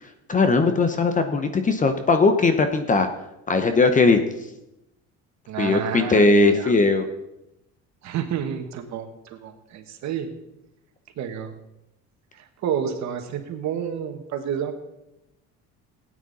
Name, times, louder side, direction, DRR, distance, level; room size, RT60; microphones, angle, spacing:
voice 1, 0.3-3.1 3.5-4.2 5.6-7.0, left 3 dB, 25° left, 8 dB, 0.8 m, -19 dB
voice 2, 5.5-6.7 8.0-10.3 11.2-11.5 12.3-14.8, right 8 dB, 60° right, 6 dB, 1.7 m, -30 dB
17.0 x 9.2 x 4.1 m, 0.91 s
cardioid pair, 140°, 32 cm